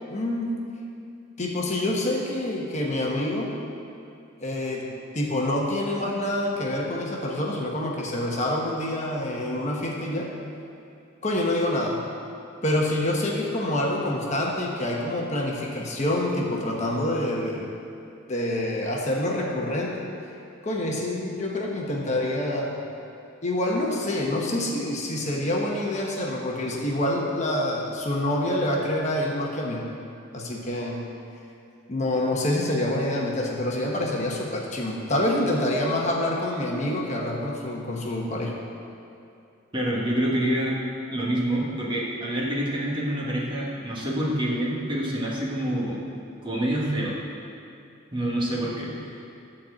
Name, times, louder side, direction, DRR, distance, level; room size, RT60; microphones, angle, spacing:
voice 1, 0.1-0.5 1.4-3.5 4.4-4.9 5.1-10.3 11.2-12.0 12.6-17.7 18.3-19.9 20.6-22.8 23.4-29.9 30.3-31.0 31.9-38.6, left 1 dB, 35° left, -2 dB, 1.1 m, -26 dB
voice 2, 39.7-40.8 41.1-46.0 46.4-47.2 48.1-49.2, right 1 dB, 25° right, -4 dB, 1.4 m, -27 dB
12.5 x 4.3 x 7.7 m, 2.6 s
head